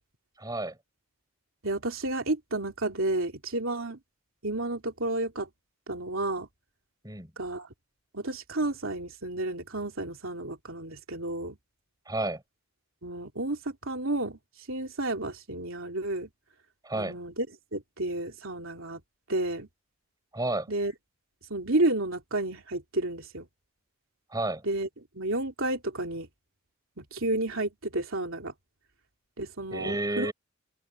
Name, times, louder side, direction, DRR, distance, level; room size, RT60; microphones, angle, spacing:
voice 1, 0.4-0.8 7.0-7.3 12.1-12.4 16.8-17.2 20.3-20.7 24.3-24.6 29.7-30.3, right 2 dB, 15° right, 5.6 m, -31 dB
voice 2, 1.6-4.0 4.4-5.5 5.9-6.5 7.4-7.7 8.1-11.6 13.0-14.4 14.7-16.3 16.9-17.5 17.7-19.0 19.3-19.7 20.7-20.9 21.5-23.5 24.6-24.9 25.1-26.3 27.0-28.5 29.4-30.3, right 2 dB, 60° right, 3.3 m, -31 dB
head